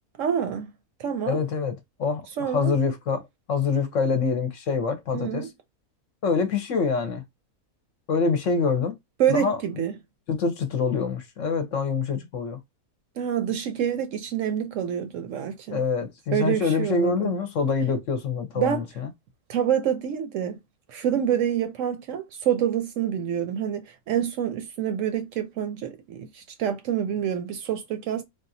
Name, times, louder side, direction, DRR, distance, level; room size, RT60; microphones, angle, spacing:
voice 1, 0.2-0.7 1.0-1.4 2.4-2.7 5.1-5.5 9.2-10.0 13.2-15.8 16.3-17.4 18.6-18.9 19.5-20.6 20.9-28.2, right 9 dB, 65° right, 0.8 m, -27 dB
voice 2, 1.3-1.7 2.0-2.2 2.5-3.2 3.5-5.5 6.2-7.2 8.1-9.0 9.3-9.6 10.3-12.6 15.7-19.1, left 5 dB, 60° left, 0.9 m, -25 dB
3.5 x 2.4 x 2.6 m
omnidirectional pair, 1.6 m